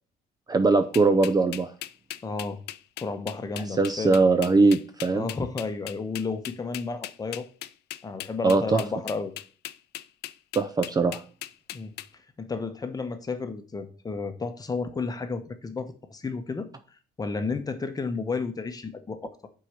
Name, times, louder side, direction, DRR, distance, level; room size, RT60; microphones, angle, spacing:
voice 1, 0.5-1.7 3.8-5.3 8.4-8.8 10.5-11.2, right 3 dB, 25° right, 9 dB, 0.5 m, -21 dB
sound 1, 0.9-12.1, left 15 dB, 75° left, 0.5 m, -38 dB
voice 2, 2.2-2.6 3.0-4.2 5.1-7.5 8.0-9.3 11.7-11.9 12.4-16.7 17.2-19.3, left 4 dB, 20° left, 8 dB, 1.0 m, -32 dB
5.7 x 4.8 x 5.8 m, 0.40 s
cardioid pair, 110°, 17 cm